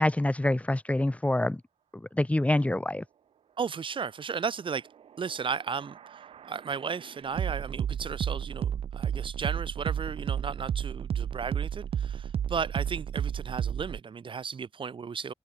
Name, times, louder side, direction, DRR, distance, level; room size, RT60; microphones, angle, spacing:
voice 1, 0.0-1.6 2.1-3.0, left 1 dB, 15° left, 2.4 m, -26 dB
voice 2, 3.6-4.9 5.2-6.0 6.5-15.3, right 6 dB, 60° right, 4.6 m, -35 dB
sound 1, 5.3-14.0, right 9 dB, 85° right, 3.8 m, -32 dB
cardioid pair, 60°, 10 cm